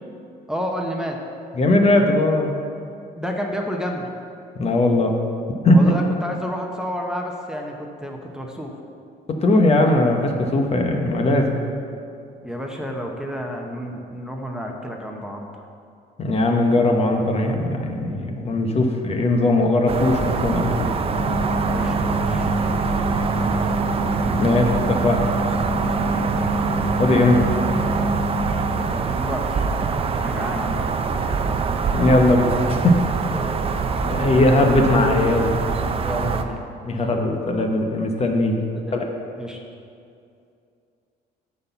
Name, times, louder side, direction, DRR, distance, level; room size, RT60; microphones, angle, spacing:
voice 1, 0.5-1.2 3.2-4.1 5.7-7.7 8.0-8.7 12.4-15.5 21.7-22.5 26.2-26.5 28.7-29.6 30.2-30.9 33.3-33.8 36.0-36.6 36.9-37.0 38.7-39.0 39.4-39.6, equal, 5° right, 0 dB, 0.9 m, -30 dB
voice 2, 1.6-2.5 4.6-5.2 5.6-5.9 9.3-11.5 16.2-20.8 24.4-25.2 27.0-27.4 31.9-33.0 34.1-35.5 36.8-38.6 38.9-39.0, left 2 dB, 35° left, 3 dB, 0.9 m, -19 dB
sound 1, 19.9-36.4, right 5 dB, 35° right, 0.6 m, -24 dB
sound 2, 21.1-28.5, right 1 dB, 10° left, 1.5 m, -26 dB
9.5 x 4.2 x 6.9 m, 2.5 s
cardioid pair, 110°, 17 cm